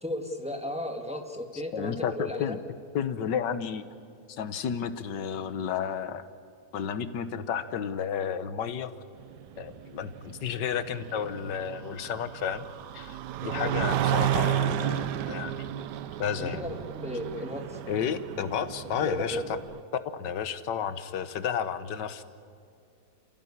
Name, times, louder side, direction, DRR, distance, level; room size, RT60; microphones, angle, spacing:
voice 1, 0.0-2.5 13.4-13.7 16.4-17.8 19.0-19.4, left 1 dB, 5° right, 3 dB, 1.9 m, -35 dB
voice 2, 1.7-2.6 2.9-3.8 4.3-6.3 6.7-8.9 9.6-12.7 12.9-15.5 16.2-16.6 17.9-19.6 20.1-22.2, left 8 dB, 85° left, 11 dB, 1.7 m, -32 dB
sound 1, 9.2-19.8, right 11 dB, 75° right, 1.3 m, -32 dB
28.5 x 15.5 x 9.9 m, 2.5 s
omnidirectional pair, 1.8 m